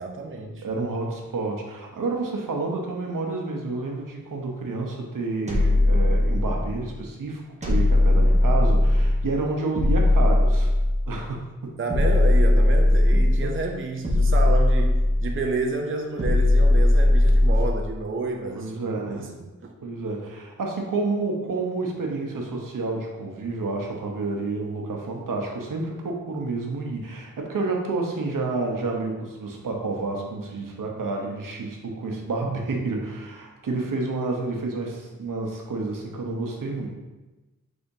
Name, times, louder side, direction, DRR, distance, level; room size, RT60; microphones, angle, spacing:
voice 1, 0.0-0.7 11.8-19.7, right 3 dB, 40° right, 2 dB, 0.5 m, -30 dB
voice 2, 0.6-10.7 11.1-11.7 13.1-13.5 18.5-19.3 19.8-36.9, right 3 dB, 90° right, 0 dB, 0.8 m, -29 dB
sound 1, 5.5-6.8 7.6-9.3 9.8-11.2 11.9-13.5 14.0-15.4 16.2-17.8, left 1 dB, 20° right, 1.0 m, -19 dB
5.2 x 3.5 x 2.7 m, 1.1 s
wide cardioid pair, 90°, 32 cm